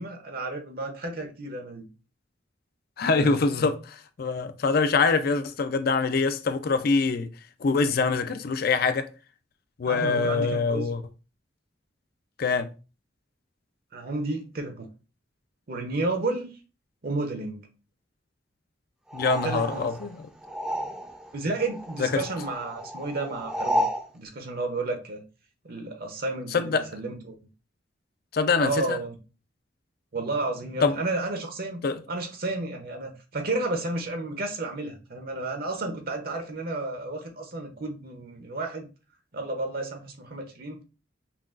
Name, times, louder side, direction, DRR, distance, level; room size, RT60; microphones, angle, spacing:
voice 1, 0.0-1.9 3.1-3.3 9.9-10.9 13.9-14.9 15.7-16.5 17.0-17.7 19.4-19.8 21.3-23.9 24.1-25.2 25.6-27.4 28.6-29.1 30.1-38.9 39.3-40.8, right 2 dB, 50° right, 0.7 m, -32 dB
voice 2, 3.0-7.3 7.6-9.1 9.8-11.0 12.4-12.7 19.1-20.3 22.0-22.2 26.5-26.9 28.3-29.0 30.8-31.0 31.8-32.0, left 4 dB, 55° left, 0.4 m, -24 dB
sound 1, 19.1-21.3 21.6-24.1, equal, 5° right, 0.5 m, -32 dB
5.8 x 2.3 x 2.4 m
head